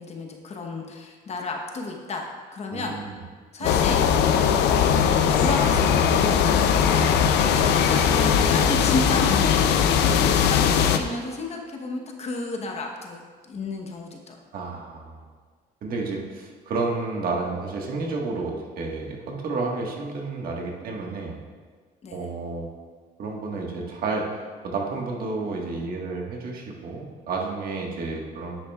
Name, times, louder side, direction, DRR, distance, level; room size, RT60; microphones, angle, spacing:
voice 1, 0.0-3.0 3.5-4.5 5.3-6.2 6.8-9.8 10.2-14.4 22.0-22.3, left 3 dB, 40° left, 2 dB, 1.0 m, -32 dB
voice 2, 2.7-3.2 3.6-3.7 14.5-15.2 15.8-21.4 22.1-22.7 23.2-24.3 24.6-28.6, right 3 dB, 60° right, -1 dB, 1.5 m, -31 dB
sound 1, 3.6-11.0, left 7 dB, 80° left, 0.5 m, -20 dB
9.9 x 7.5 x 2.4 m, 1.5 s
cardioid pair, 110°, 17 cm